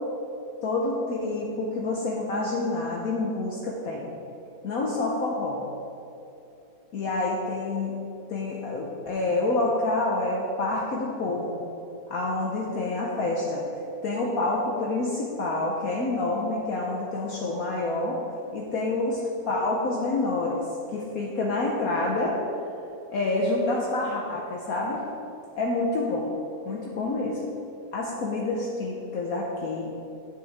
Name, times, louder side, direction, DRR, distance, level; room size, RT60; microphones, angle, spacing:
voice 1, 0.6-4.1 4.6-5.6 6.9-7.9 8.3-11.7 12.1-13.6 14.0-18.2 18.5-20.6 20.9-22.4 23.1-25.0 25.6-26.3 26.7-27.4 27.9-30.0, left 2 dB, 60° left, -3 dB, 1.3 m, -27 dB
9.5 x 8.3 x 3.5 m, 2.8 s
omnidirectional pair, 1.8 m